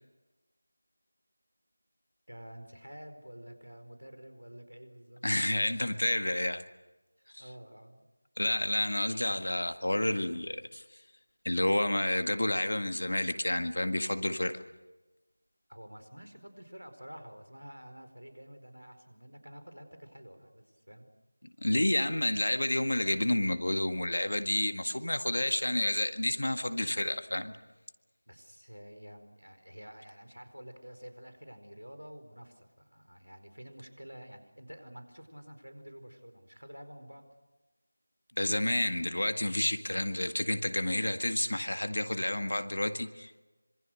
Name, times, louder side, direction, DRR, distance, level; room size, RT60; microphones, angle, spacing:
voice 1, 2.3-5.5 7.4-8.1 15.7-21.1 28.3-37.3, equal, 85° right, 8 dB, 4.7 m, -49 dB
voice 2, 5.2-6.6 7.3-7.4 8.4-10.8 11.5-14.6 21.6-27.5 38.4-43.3, left 1 dB, 65° left, 9 dB, 1.8 m, -30 dB
26.0 x 24.0 x 6.6 m, 1.1 s
figure-of-eight pair, 170°, 0 cm